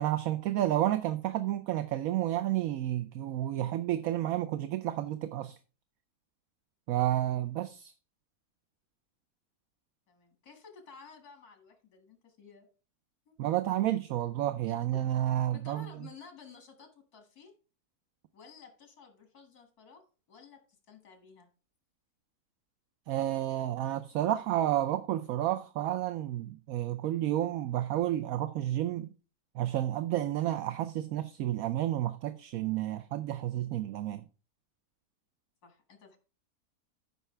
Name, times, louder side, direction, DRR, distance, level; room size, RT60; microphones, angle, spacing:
voice 1, 0.0-5.6 6.9-7.9 13.4-15.9 23.1-29.1 29.5-34.2, right 13 dB, 70° right, 1.0 m, -31 dB
voice 2, 10.1-12.7 13.3-13.4 14.7-14.8 15.5-17.5 18.3-20.0 20.3-21.5 35.6-36.2, left 5 dB, 80° left, 2.5 m, -53 dB
13.5 x 5.5 x 3.3 m
omnidirectional pair, 1.6 m